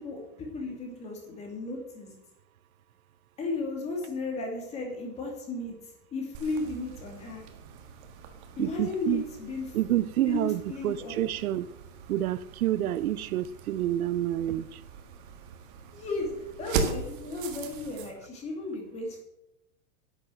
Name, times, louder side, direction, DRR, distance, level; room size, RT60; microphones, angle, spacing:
voice 1, 0.0-2.1 3.4-5.7 6.1-7.4 8.6-9.8 10.3-11.2 15.9-19.2, left 2 dB, 15° left, 2.4 m, -34 dB
sound 1, 6.3-18.1, right 6 dB, 35° right, 1.6 m, -40 dB
voice 2, 8.6-9.2 9.7-11.7 12.1-14.8, right 13 dB, 70° right, 0.7 m, -28 dB
11.0 x 7.8 x 7.7 m
supercardioid pair, 175°, 45 cm